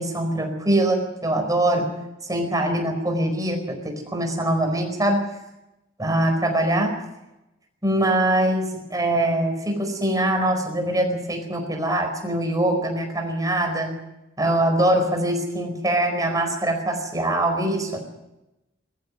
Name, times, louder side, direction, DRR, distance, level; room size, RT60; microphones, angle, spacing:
voice 1, 0.0-1.9 2.3-5.3 6.0-7.0 7.8-13.9 14.4-18.0, right 1 dB, 20° right, 4 dB, 4.6 m, -23 dB
22.0 x 14.0 x 9.5 m, 0.95 s
head